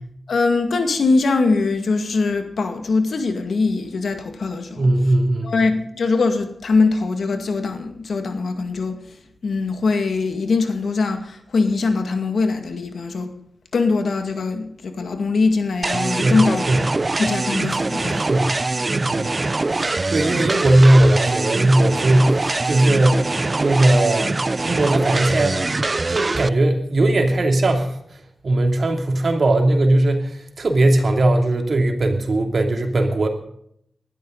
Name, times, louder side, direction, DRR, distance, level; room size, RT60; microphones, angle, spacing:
voice 1, 0.3-4.9 5.4-9.0 9.4-13.3 13.7-16.7 17.2-18.2 19.2-19.3, left 3 dB, 80° left, 6 dB, 2.1 m, -22 dB
voice 2, 4.8-5.5 16.2-16.4 16.7-16.8 18.1-18.5 18.9-19.3 20.1-22.4 22.6-23.2 23.6-25.6 26.1-28.0 28.4-30.3 30.6-33.3, right 1 dB, 65° right, 4 dB, 2.9 m, -18 dB
sound 1, 15.8-26.5, right 3 dB, 40° right, 0.5 m, -23 dB
20.0 x 12.5 x 4.0 m, 0.69 s
cardioid pair, 60°, 0 cm